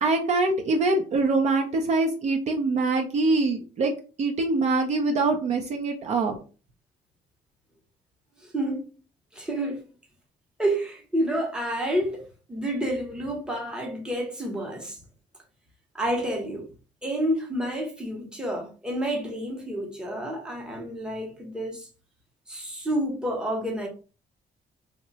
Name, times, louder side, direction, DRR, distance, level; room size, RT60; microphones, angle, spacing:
voice 1, 0.0-3.9 4.2-6.4, right 3 dB, 45° right, 0.5 m, -24 dB
voice 2, 8.4-8.8 9.3-9.8 10.6-15.0 15.9-16.7 17.0-21.9 22.5-23.9, right 1 dB, 5° right, 0.8 m, -29 dB
2.9 x 2.2 x 3.9 m
cardioid pair, 160°, 16 cm